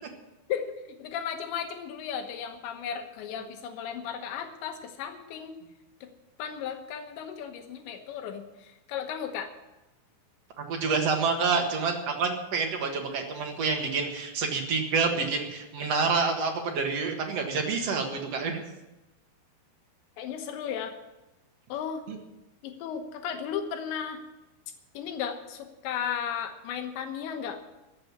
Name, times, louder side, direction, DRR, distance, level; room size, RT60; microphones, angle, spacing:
voice 1, 1.0-5.6 6.0-6.1 6.4-9.5 20.2-20.9 21.7-22.0 22.6-24.2 24.9-27.6, left 8 dB, 85° left, 5 dB, 3.4 m, -35 dB
voice 2, 10.6-18.6 22.1-22.2, right 4 dB, 55° right, 3 dB, 1.9 m, -28 dB
14.5 x 7.8 x 9.5 m, 1.0 s
omnidirectional pair, 5.1 m